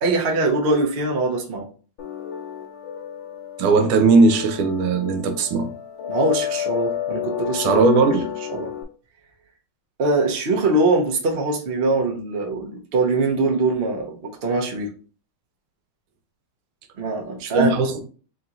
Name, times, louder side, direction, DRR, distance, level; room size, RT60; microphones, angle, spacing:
voice 1, 0.0-1.7 6.1-7.8 8.5-8.7 10.0-14.9 17.0-17.7, right 2 dB, 60° right, 0.6 m, -22 dB
sound 1, 2.0-8.8, left 10 dB, 70° left, 1.3 m, -31 dB
voice 2, 3.6-5.7 7.5-8.3 17.5-18.0, right 3 dB, 80° right, 1.6 m, -18 dB
3.6 x 2.9 x 3.8 m
omnidirectional pair, 2.4 m